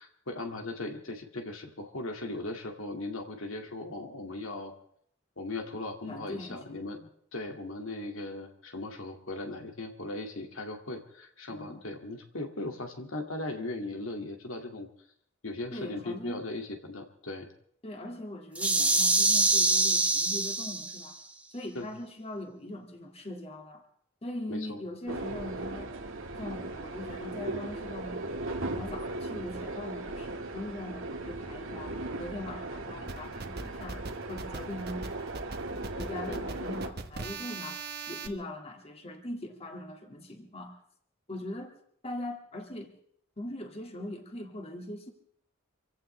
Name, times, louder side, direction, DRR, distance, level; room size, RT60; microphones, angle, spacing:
voice 1, 0.0-4.7 5.4-14.9 15.4-17.5 21.7-21.9 24.5-24.8 36.3-36.4, left 2 dB, 75° left, 3 dB, 2.2 m, -38 dB
voice 2, 6.1-6.6 11.5-11.8 15.7-16.5 17.8-21.2 21.5-23.8 24.2-25.9 26.4-28.4 28.7-35.0 35.7-37.8 38.1-40.8 41.3-41.8 42.0-42.9 43.4-45.1, left 1 dB, 30° left, 3 dB, 2.2 m, -41 dB
sound 1, 18.5-21.1, right 2 dB, 5° right, 1.3 m, -25 dB
sound 2, 25.1-36.9, right 2 dB, 70° right, 1.9 m, -37 dB
sound 3, 33.1-38.3, right 4 dB, 50° right, 1.3 m, -40 dB
26.5 x 16.5 x 3.3 m, 0.65 s
head